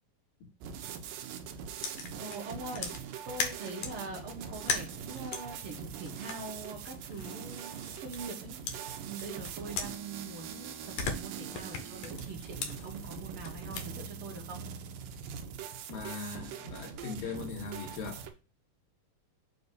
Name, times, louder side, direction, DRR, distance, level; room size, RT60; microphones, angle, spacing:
sound 1, 0.6-18.3, right 7 dB, 85° right, 2.4 m, -42 dB
sound 2, 1.8-4.0 4.5-8.4 8.7-10.5 10.8-13.9, left 5 dB, 65° left, 1.8 m, -39 dB
voice 1, 2.2-14.6, right 3 dB, 65° right, 1.4 m, -43 dB
voice 2, 15.9-18.2, left 4 dB, 85° left, 3.2 m, -40 dB
6.8 x 2.6 x 5.3 m
omnidirectional pair, 3.9 m